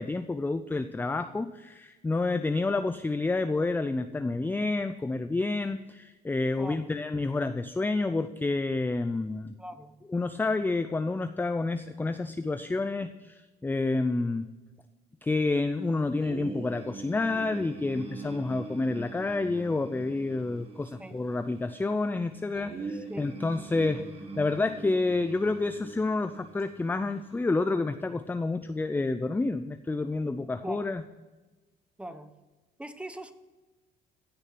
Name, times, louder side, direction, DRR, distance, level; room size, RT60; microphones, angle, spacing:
voice 1, 0.0-9.5 10.1-14.5 15.2-24.0 24.3-31.0, left 3 dB, 10° left, 10 dB, 0.5 m, -29 dB
voice 2, 6.6-6.9 9.6-9.9 20.8-21.1 22.9-23.2 30.6-30.9 32.0-32.3 32.8-33.3, right 1 dB, 5° right, 10 dB, 1.0 m, -41 dB
sound 1, 16.2-27.4, right 3 dB, 35° right, 1.8 m, -43 dB
15.5 x 6.5 x 5.9 m, 1.2 s
cardioid pair, 110°, 17 cm